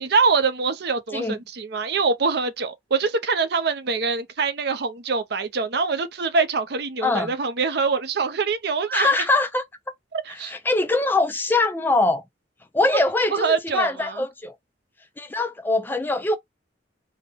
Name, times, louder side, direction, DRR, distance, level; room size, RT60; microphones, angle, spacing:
voice 1, 0.0-9.2 10.1-10.5 13.3-14.2, right 4 dB, 60° right, 0.6 m, -24 dB
voice 2, 7.0-7.3 8.9-9.6 10.3-12.2 12.7-14.5 15.2-16.4, left 2 dB, 10° left, 0.3 m, -22 dB
3.5 x 2.2 x 3.4 m
head